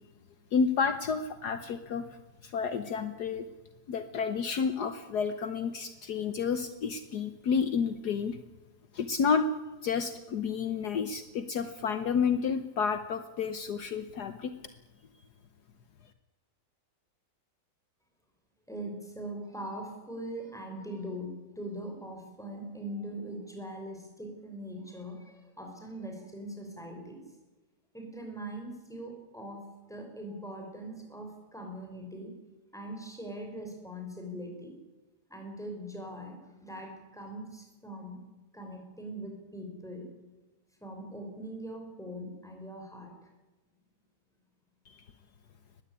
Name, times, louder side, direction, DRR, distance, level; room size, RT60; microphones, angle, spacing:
voice 1, 0.5-2.0 2.4-3.5 3.9-8.4 8.9-9.5 9.8-14.5 44.9-45.0, left 6 dB, 65° left, 10 dB, 1.6 m, -30 dB
voice 2, 18.7-27.2 27.9-32.3 32.7-34.7 35.3-38.2 38.5-40.1 40.8-43.2, right 1 dB, ahead, 3 dB, 5.8 m, -41 dB
20.0 x 15.5 x 10.0 m, 1.2 s
omnidirectional pair, 1.9 m